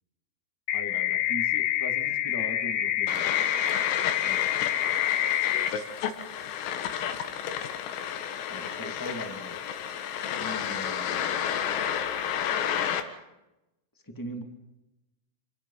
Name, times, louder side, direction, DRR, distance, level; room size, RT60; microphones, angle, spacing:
sound 1, 0.7-5.7, left 13 dB, 65° left, 3.3 m, -27 dB
voice 1, 0.7-3.4 4.2-4.5 8.5-9.6 10.4-11.5 14.0-14.4, left 1 dB, 10° left, 4 dB, 0.9 m, -40 dB
sound 2, 3.1-13.0, left 9 dB, 85° left, 4.4 m, -31 dB
27.5 x 19.0 x 5.8 m, 0.96 s
omnidirectional pair, 5.8 m